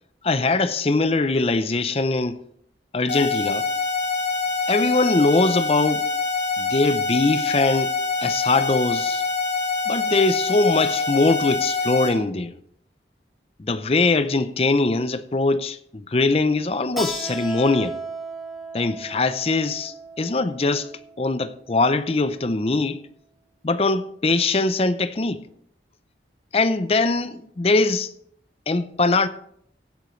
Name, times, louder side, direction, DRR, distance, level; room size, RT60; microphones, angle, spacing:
voice 1, 0.2-2.4 2.9-3.7 4.7-6.0 6.6-8.0 8.2-9.2 9.9-12.5 13.6-18.0 18.7-20.9 21.2-23.0 23.6-25.5 26.5-28.1 28.7-29.3, left 3 dB, 35° left, 0.5 m, -22 dB
sound 1, 3.1-12.1, left 4 dB, 80° left, 2.7 m, -25 dB
Keyboard (musical), 17.0-22.2, right 2 dB, ahead, 1.4 m, -36 dB
16.5 x 9.0 x 3.2 m
head